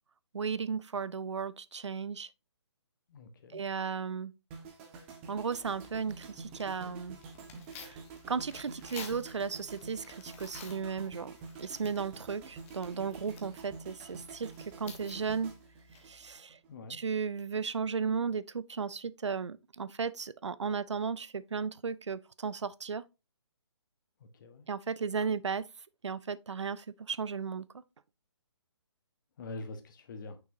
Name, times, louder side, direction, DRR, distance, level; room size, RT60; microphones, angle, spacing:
voice 1, 0.3-2.3 3.5-4.3 5.3-7.2 7.8-8.0 8.3-11.3 11.6-15.5 16.0-16.6 16.9-23.1 24.7-25.7 26.0-27.7, right 6 dB, 85° right, 0.5 m, -35 dB
voice 2, 3.1-3.6 16.7-17.0 24.2-24.7 29.4-30.4, left 2 dB, 45° left, 1.2 m, -45 dB
sound 1, 4.5-16.7 17.0-17.3, right 4 dB, 25° right, 1.4 m, -48 dB
Tearing, 5.6-16.3, left 6 dB, 30° left, 1.3 m, -53 dB
6.1 x 6.0 x 2.6 m
figure-of-eight pair, 145°, 15 cm